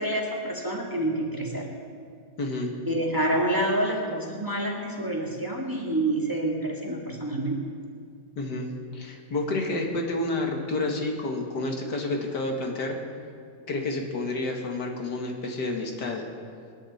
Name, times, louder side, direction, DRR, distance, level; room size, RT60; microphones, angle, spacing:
voice 1, 0.0-1.7 2.9-7.6, right 1 dB, 10° right, -2 dB, 1.9 m, -27 dB
voice 2, 2.4-2.7 8.4-13.0 13.7-16.3, left 2 dB, 75° left, 1 dB, 2.3 m, -29 dB
26.5 x 11.0 x 4.2 m, 2.2 s
omnidirectional pair, 1.8 m